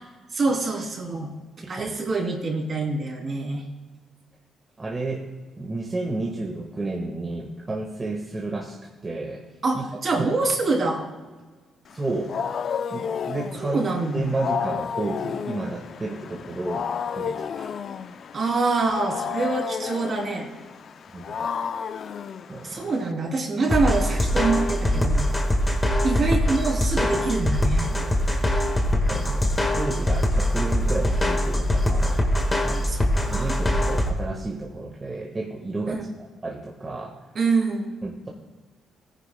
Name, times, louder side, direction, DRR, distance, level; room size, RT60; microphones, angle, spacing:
voice 1, 0.3-1.3 1.7-3.6 9.6-11.1 13.6-14.3 18.3-20.5 22.6-25.3 26.0-27.9 32.9-33.6 35.9-36.1 37.3-37.9, right 3 dB, 45° right, 0 dB, 2.9 m, -25 dB
voice 2, 1.6-1.9 4.8-5.2 5.6-8.8 9.0-9.4 9.7-9.8 10.2-10.3 11.9-12.3 12.9-13.8 14.1-16.9 17.1-17.7 18.0-18.1 21.1-21.3 22.5-22.9 29.1-32.9 33.3-36.0 36.4-37.1 38.0-38.3, right 2 dB, 25° right, -1 dB, 1.4 m, -31 dB
Wild animals, 11.9-23.1, left 7 dB, 55° left, 0.4 m, -32 dB
sound 1, 23.7-34.1, left 1 dB, 20° left, 1.5 m, -23 dB
17.5 x 9.9 x 2.2 m, 1.3 s
cardioid pair, 90°, 0 cm